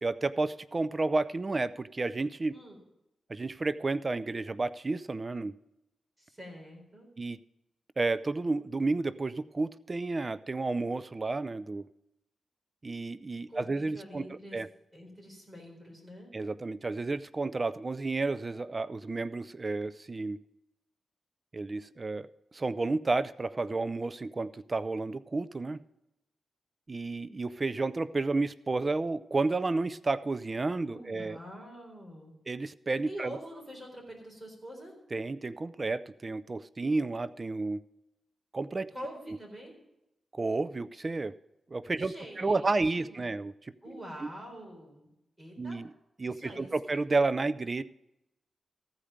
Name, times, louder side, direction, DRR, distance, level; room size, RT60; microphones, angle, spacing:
voice 1, 0.0-2.5 3.3-5.6 7.2-7.4 8.0-11.9 12.8-14.7 16.3-20.4 21.5-22.3 22.5-25.8 26.9-31.4 32.5-33.3 35.1-37.8 38.5-38.9 39.3-39.4 40.3-41.3 41.7-43.7 45.6-45.9 46.2-47.8, right 3 dB, 35° right, 16 dB, 0.4 m, -31 dB
voice 2, 6.2-7.1 13.5-14.6 14.9-16.3 30.9-32.3 33.0-34.9 38.9-39.7 42.0-43.3 43.8-45.1 45.4-45.8 46.2-47.0, equal, 15° right, -1 dB, 4.1 m, -46 dB
14.5 x 5.0 x 8.8 m, 0.87 s
wide cardioid pair, 95°, 0 cm